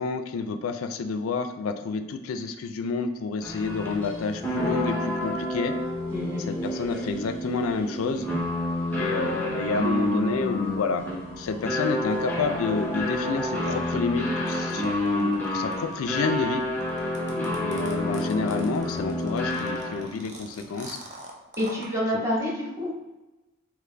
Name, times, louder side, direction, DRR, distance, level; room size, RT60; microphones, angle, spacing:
voice 1, 0.0-5.8 6.4-8.3 9.0-11.0 11.4-16.6 17.6-21.0 22.1-22.2, left 4 dB, 80° left, 8 dB, 0.4 m, -29 dB
sound 1, 3.4-20.2, left 1 dB, 10° left, 0.8 m, -29 dB
sound 2, 14.5-21.9, right 2 dB, 35° right, 0.6 m, -44 dB
voice 2, 17.3-17.6 21.6-22.9, left 1 dB, 15° right, -6 dB, 1.2 m, -28 dB
3.8 x 3.0 x 3.3 m, 1.0 s
head